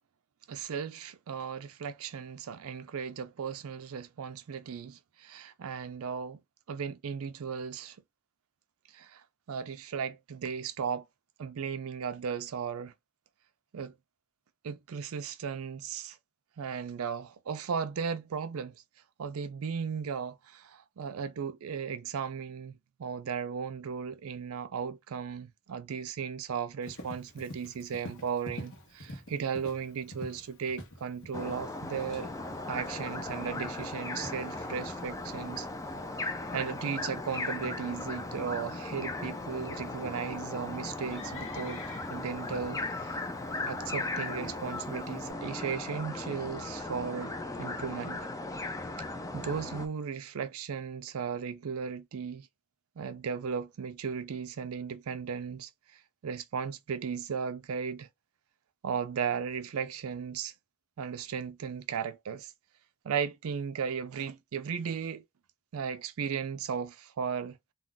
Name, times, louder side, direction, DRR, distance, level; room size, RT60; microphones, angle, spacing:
voice 1, 0.5-6.4 6.7-8.0 8.9-11.0 11.4-12.9 13.7-13.9 14.6-16.2 16.6-18.8 19.2-32.3 32.7-35.7 36.5-41.8 42.1-43.2 43.7-47.3 47.6-48.2 49.3-52.5 53.0-58.1 58.8-60.5 61.0-62.5 63.0-65.2 65.7-67.6, right 6 dB, 65° right, 0.4 m, -36 dB
Livestock farm animals working animals, 26.8-45.3, left 1 dB, 55° left, 1.0 m, -49 dB
sound 1, 31.3-49.9, left 2 dB, 15° left, 0.4 m, -37 dB
2.4 x 2.3 x 3.7 m
head